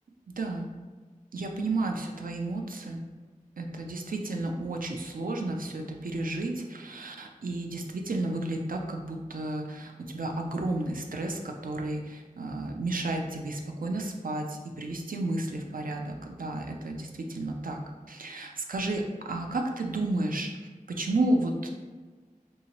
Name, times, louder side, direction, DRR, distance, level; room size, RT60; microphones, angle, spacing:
voice 1, 0.4-0.7 1.3-3.0 3.6-17.8 18.1-21.7, right 2 dB, 85° right, 2 dB, 0.4 m, -32 dB
2.9 x 2.7 x 2.8 m, 1.4 s
wide cardioid pair, 40°, 14 cm